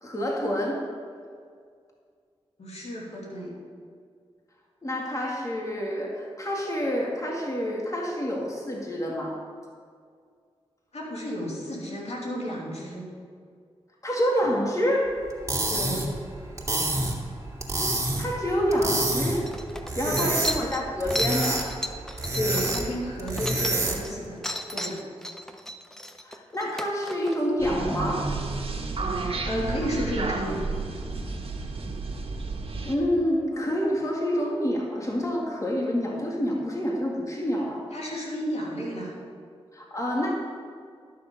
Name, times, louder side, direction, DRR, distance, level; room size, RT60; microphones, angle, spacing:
voice 1, 0.0-0.8 4.8-9.4 14.0-15.2 17.9-19.5 20.0-21.7 26.2-28.3 32.7-37.8 39.7-40.3, equal, 30° left, -2 dB, 2.1 m, -27 dB
voice 2, 2.6-3.6 10.9-13.1 15.7-16.1 20.0-20.3 22.3-24.4 24.7-25.0 29.4-30.6 37.9-39.1, equal, 65° left, -4 dB, 2.8 m, -32 dB
sound 1, 15.3-24.2, right 2 dB, 25° right, 2.2 m, -28 dB
sound 2, 19.0-19.1 19.5-24.1 24.4-27.4, equal, 5° left, 0.9 m, -34 dB
sound 3, 27.6-32.9, right 3 dB, 55° right, 1.5 m, -31 dB
12.0 x 6.7 x 5.3 m, 2.1 s
cardioid pair, 40°, 12 cm